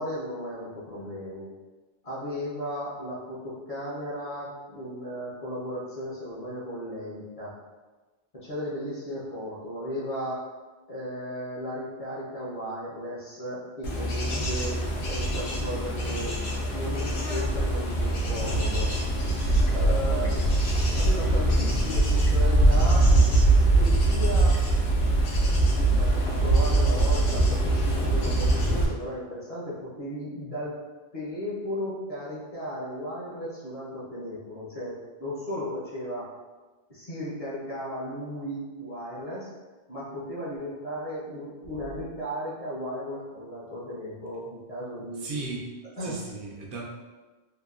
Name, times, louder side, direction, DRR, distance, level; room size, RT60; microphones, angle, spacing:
voice 1, 0.0-1.5 2.0-7.5 8.3-10.5 10.9-14.8 15.1-16.3 16.7-19.1 19.7-20.3 21.0-23.1 23.5-24.6 25.8-30.8 31.1-36.3 36.9-39.5 39.9-45.3 46.0-46.2, equal, 40° left, -8 dB, 0.7 m, -35 dB
Bird / Insect / Wind, 13.8-28.9, right 2 dB, 80° left, 0.9 m, -23 dB
voice 2, 45.1-45.7 46.0-46.8, right 3 dB, 70° right, -2 dB, 0.8 m, -36 dB
2.9 x 2.2 x 2.3 m, 1.3 s
omnidirectional pair, 1.0 m